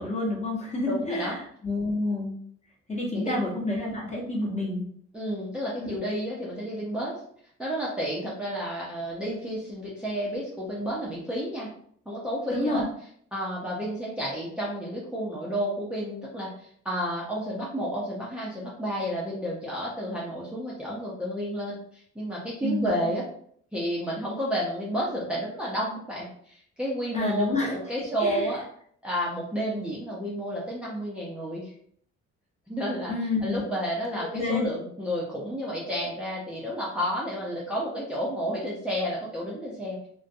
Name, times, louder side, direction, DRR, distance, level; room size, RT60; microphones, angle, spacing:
voice 1, 0.0-1.3 1.6-2.3 2.9-4.8 12.5-12.8 22.6-22.9 27.1-27.7 28.2-28.5 33.1-33.6 34.3-34.7, left 2 dB, 25° left, -4 dB, 1.0 m, -28 dB
voice 2, 0.9-1.4 3.1-3.3 5.1-7.2 7.6-11.7 12.1-12.8 13.3-23.2 23.7-28.6 29.0-31.7 32.7-33.1 33.4-40.1, equal, 5° right, -6 dB, 0.6 m, -31 dB
2.5 x 2.2 x 2.6 m, 0.63 s
cardioid pair, 90°, 30 cm